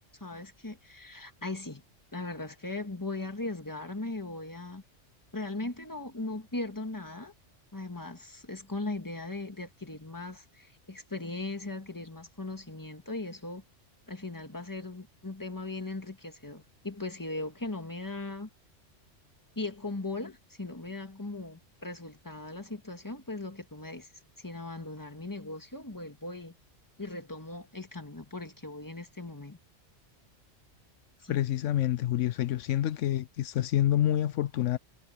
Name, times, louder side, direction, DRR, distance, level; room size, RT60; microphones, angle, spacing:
voice 1, 0.2-1.8 2.1-4.8 5.3-7.3 7.7-13.6 14.1-18.5 19.6-24.1 24.4-26.5 27.0-29.6 31.2-31.4, left 2 dB, 15° left, 1.9 m, -38 dB
voice 2, 31.3-34.8, left 12 dB, 85° left, 1.0 m, -27 dB
omnidirectional pair, 1.2 m